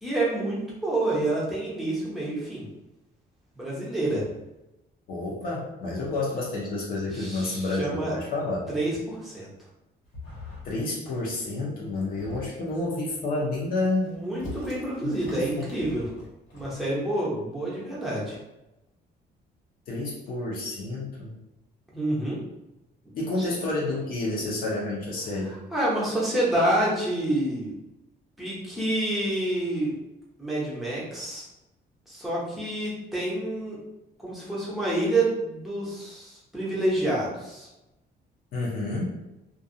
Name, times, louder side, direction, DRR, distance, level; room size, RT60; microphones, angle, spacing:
voice 1, 0.0-2.6 3.6-4.3 7.1-8.1 8.7-9.5 14.1-16.1 16.5-18.4 21.9-22.4 23.4-23.5 25.5-27.7 28.4-29.9 30.4-31.4 32.1-33.8 34.2-37.7, right 1 dB, ahead, -7 dB, 0.7 m, -28 dB
voice 2, 5.1-8.7 10.6-14.1 15.0-15.7 19.9-21.4 23.1-25.5 38.5-39.2, left 2 dB, 55° left, -4 dB, 0.6 m, -29 dB
sound 1, 10.0-10.8 11.0-11.5 11.8-12.8 13.4-16.9, left 2 dB, 85° left, 0.9 m, -43 dB
2.5 x 2.3 x 2.7 m, 0.94 s
cardioid pair, 175°, 18 cm